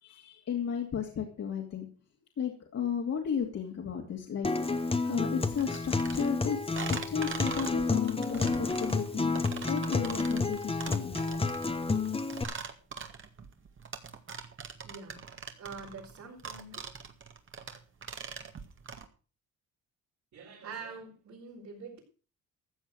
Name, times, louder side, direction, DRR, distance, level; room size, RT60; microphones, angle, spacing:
voice 1, 0.0-1.9 2.4-4.5 5.0-9.3 9.7-11.2, left 7 dB, 60° left, 1 dB, 2.6 m, -34 dB
Acoustic guitar, 4.4-12.4, left 3 dB, 20° left, 1.3 m, -30 dB
sound 1, 5.6-19.1, right 5 dB, 40° right, 2.1 m, -42 dB
voice 2, 14.8-15.2 15.5-16.8 20.3-22.0, right 4 dB, 65° right, -5 dB, 5.4 m, -45 dB
14.5 x 7.5 x 6.4 m, 0.37 s
cardioid pair, 90°, 30 cm